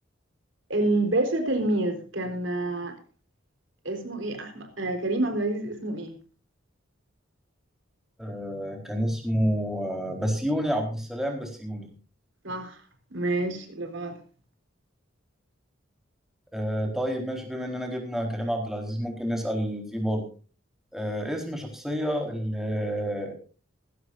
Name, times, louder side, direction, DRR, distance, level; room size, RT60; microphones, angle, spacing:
voice 1, 0.7-3.0 3.8-6.2 12.4-12.8 13.1-14.2, right 2 dB, 65° right, 4.1 m, -28 dB
voice 2, 8.2-11.9 16.5-20.2 20.9-23.3, equal, ahead, 4.2 m, -29 dB
20.0 x 16.0 x 2.6 m
head